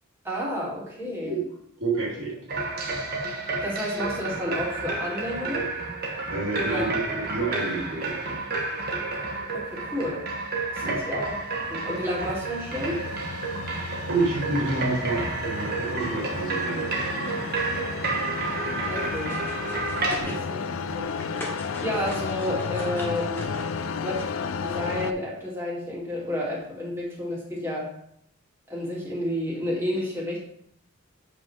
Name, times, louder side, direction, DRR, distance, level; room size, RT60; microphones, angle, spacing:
voice 1, 0.2-1.4 3.6-5.7 6.6-6.9 9.5-10.2 10.7-11.4 11.7-13.0 18.8-19.4 20.3-20.6 20.9-21.1 21.4-23.5 24.0-27.9 28.7-30.4, left 1 dB, 10° right, -7 dB, 2.7 m, -31 dB
voice 2, 1.8-2.4 6.3-8.4 10.8-11.0 14.1-17.6 20.2-20.4, right 3 dB, 65° right, -4 dB, 3.1 m, -29 dB
sound 1, 2.5-20.2, right 3 dB, 50° right, 1.4 m, -31 dB
sound 2, 11.0-25.1, left 5 dB, 70° left, 0.5 m, -33 dB
sound 3, 19.1-20.4 20.8-24.3, left 1 dB, 10° left, 1.5 m, -41 dB
8.4 x 5.2 x 3.5 m, 0.69 s
head